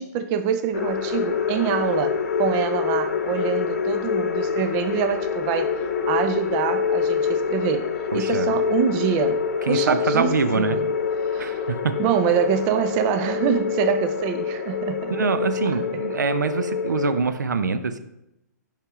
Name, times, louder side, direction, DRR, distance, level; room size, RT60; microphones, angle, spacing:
voice 1, 0.0-9.4 9.7-10.8 11.3-11.6 12.0-15.1 15.7-15.8, right 8 dB, 30° right, 8 dB, 0.4 m, -25 dB
sound 1, 0.7-17.2, left 6 dB, 55° left, 0.8 m, -26 dB
voice 2, 8.1-8.5 9.7-10.8 11.4-12.0 15.1-18.0, right 5 dB, 80° right, 10 dB, 0.5 m, -24 dB
5.4 x 5.1 x 3.6 m, 0.86 s
hypercardioid pair, 130°, 10 cm